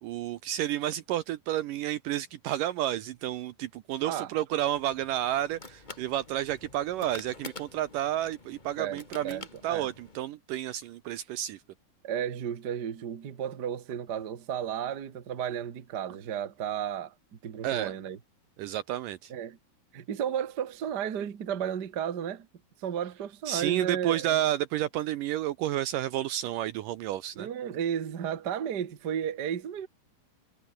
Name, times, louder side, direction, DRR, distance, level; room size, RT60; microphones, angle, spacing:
voice 1, 0.0-11.6 17.6-17.9 18.6-19.3 23.5-27.5, right 13 dB, 75° right, 2.1 m, -31 dB
sound 1, 4.6-10.2, left 3 dB, 30° left, 0.8 m, -48 dB
voice 2, 8.8-9.9 12.0-17.1 17.4-18.2 19.3-19.6 19.9-22.5 22.8-24.4 27.3-29.9, right 9 dB, 50° right, 1.3 m, -33 dB
omnidirectional pair, 4.4 m